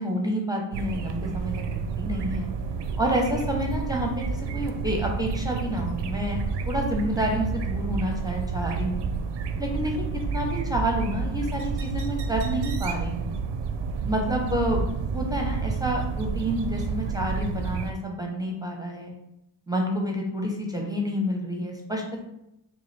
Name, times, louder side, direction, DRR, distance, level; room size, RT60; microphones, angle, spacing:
voice 1, 0.0-1.5 2.0-2.5 3.0-6.4 6.7-9.1 9.6-9.9 10.3-13.3 14.0-14.8 15.1-19.1 19.7-22.2, equal, 10° right, 0 dB, 0.7 m, -29 dB
sound 1, 0.7-17.9, right 5 dB, 60° right, 0.5 m, -30 dB
3.8 x 2.5 x 3.2 m, 0.85 s
cardioid pair, 65°, 48 cm